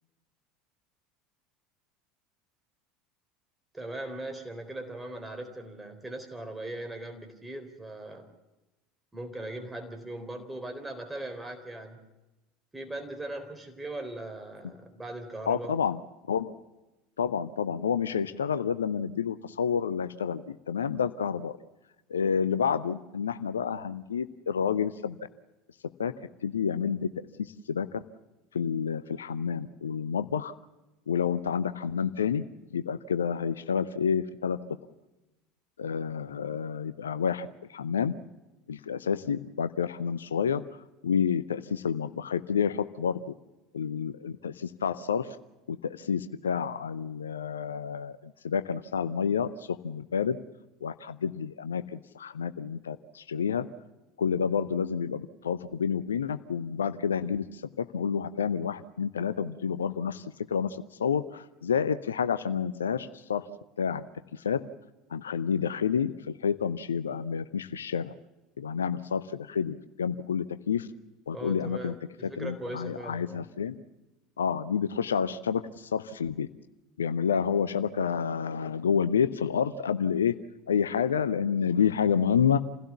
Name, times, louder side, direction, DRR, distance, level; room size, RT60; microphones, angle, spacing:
voice 1, 3.7-8.3 9.1-12.1 12.7-15.7 71.3-73.4, right 1 dB, 10° right, 5 dB, 4.0 m, -39 dB
voice 2, 15.5-16.0 16.3-16.5 17.2-21.6 22.1-25.2 26.0-26.1 26.4-27.1 27.4-28.0 28.5-30.5 31.1-32.4 32.7-34.6 35.8-38.1 38.7-40.6 41.0-43.3 43.7-45.4 45.7-50.4 50.8-53.7 54.2-63.5 63.8-64.0 64.3-64.6 65.1-68.1 68.6-70.9 71.3-71.9 72.2-73.7 74.4-76.5 77.0-80.3 80.7-82.6, left 7 dB, 75° left, 13 dB, 0.7 m, -29 dB
28.0 x 16.5 x 7.1 m, 1.0 s
figure-of-eight pair, 70°, 0 cm